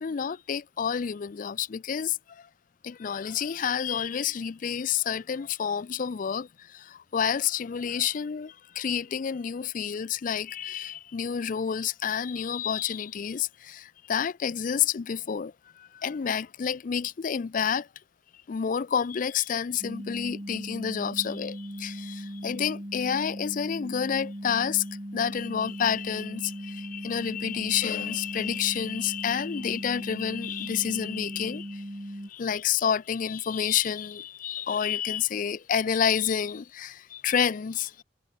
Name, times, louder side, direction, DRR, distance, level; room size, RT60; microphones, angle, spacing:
voice 1, 0.0-2.5 2.8-17.9 18.5-24.8 25.1-31.8 32.3-38.0, left 8 dB, 45° left, 0.4 m, -29 dB
sound 1, 19.8-32.3, equal, 30° right, 5.2 m, -38 dB
head